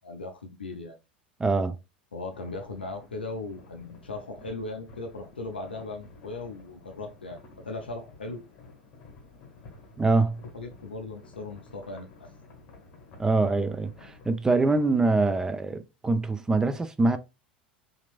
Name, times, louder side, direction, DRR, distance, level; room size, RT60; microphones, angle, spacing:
voice 1, 0.0-1.0 2.1-8.4 10.5-12.3, left 3 dB, 80° left, 0.4 m, -38 dB
voice 2, 1.4-1.8 10.0-10.4 13.2-17.2, right 3 dB, 10° right, 0.4 m, -24 dB
sound 1, 2.3-14.3, left 3 dB, 40° left, 1.1 m, -51 dB
2.9 x 2.7 x 2.3 m
figure-of-eight pair, 80°, 5 cm